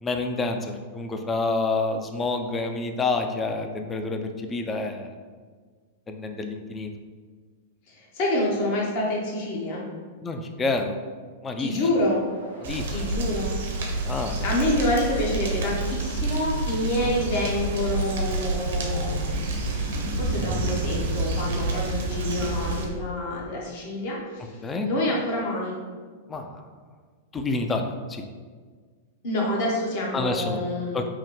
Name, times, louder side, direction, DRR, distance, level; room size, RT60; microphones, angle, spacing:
voice 1, 0.0-5.1 6.1-6.9 10.2-11.0 11.4-11.8 12.6-13.3 14.0-14.5 17.0-17.1 21.8-22.0 24.6-24.9 26.3-26.6 27.3-28.2 30.1-30.6 30.9-31.1, left 3 dB, 20° left, 5 dB, 0.4 m, -28 dB
voice 2, 7.9-9.8 11.6-12.2 12.9-13.5 13.9-14.1 14.4-19.2 20.2-24.6 24.8-25.7 29.2-31.0, left 1 dB, 55° left, -3 dB, 1.1 m, -27 dB
sound 1, 11.6-14.4 16.9-19.7, equal, 85° left, 1.0 m, -45 dB
sound 2, 12.6-22.9, right 2 dB, 70° right, 0.8 m, -28 dB
5.4 x 2.1 x 3.1 m, 1.5 s
hypercardioid pair, 100°, 0 cm